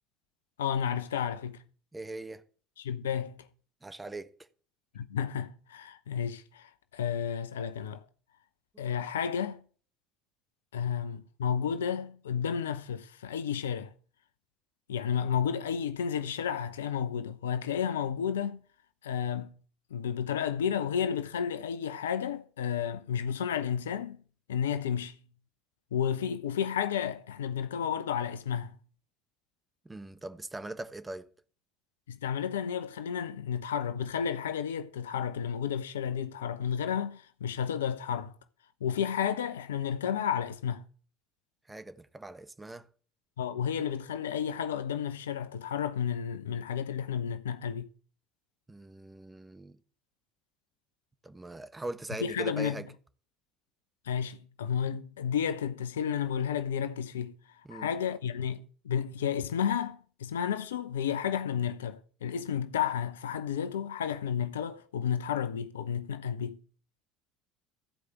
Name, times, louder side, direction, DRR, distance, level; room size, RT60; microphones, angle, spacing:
voice 1, 0.6-1.6 2.8-3.4 4.9-8.0 8.8-9.6 10.7-13.9 14.9-18.6 19.0-19.5 19.9-24.2 24.5-25.1 25.9-28.7 32.1-38.3 38.8-40.8 43.4-47.9 52.2-52.8 54.1-57.3 57.7-66.6, left 8 dB, 80° left, 0.8 m, -32 dB
voice 2, 1.9-2.4 3.8-4.3 8.7-8.8 29.8-31.3 41.7-42.9 48.7-49.8 51.2-52.9 57.6-57.9, right 2 dB, 15° right, 1.2 m, -41 dB
15.0 x 5.0 x 8.2 m
hypercardioid pair, 65°, 0 cm